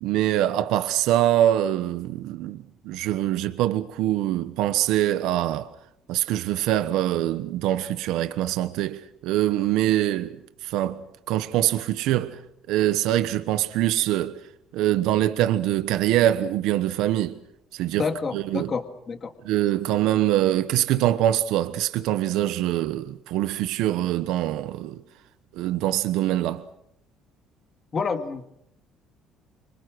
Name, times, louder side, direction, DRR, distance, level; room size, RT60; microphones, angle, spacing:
voice 1, 0.0-5.7 6.1-12.4 12.7-14.4 14.7-17.3 17.7-18.1 18.3-18.7 19.4-25.0 25.6-26.6, right 13 dB, 75° right, 1.1 m, -24 dB
voice 2, 18.0-19.3 27.9-28.5, left 5 dB, 25° left, 2.1 m, -29 dB
28.5 x 26.0 x 6.3 m
cardioid pair, 175°, 0 cm